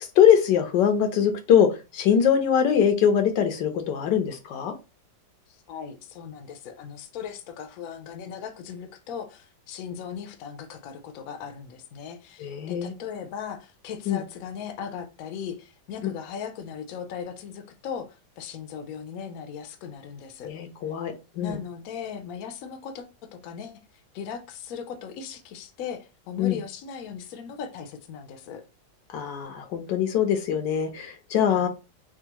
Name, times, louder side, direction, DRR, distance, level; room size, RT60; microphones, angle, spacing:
voice 1, 0.2-4.7 12.4-12.9 14.1-14.2 20.4-21.6 26.4-26.6 29.1-31.7, left 8 dB, 85° left, 1.3 m, -22 dB
voice 2, 5.5-20.5 21.4-23.8 24.1-28.6 31.5-31.7, left 7 dB, 65° left, 0.9 m, -38 dB
3.6 x 2.4 x 2.8 m
omnidirectional pair, 1.9 m